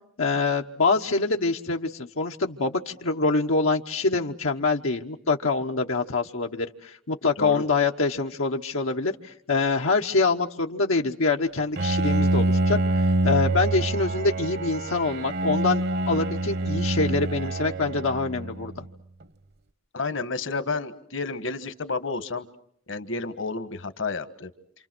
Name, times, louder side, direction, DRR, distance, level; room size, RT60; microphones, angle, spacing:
voice 1, 0.2-12.8 13.2-18.8, left 3 dB, 85° left, 2 dB, 1.2 m, -25 dB
voice 2, 7.4-7.7 19.9-22.5 22.9-24.5, left 3 dB, 65° left, 11 dB, 1.5 m, -31 dB
Bowed string instrument, 11.8-18.9, right 2 dB, 50° right, 1.0 m, -26 dB
28.5 x 28.0 x 6.2 m, 0.64 s
head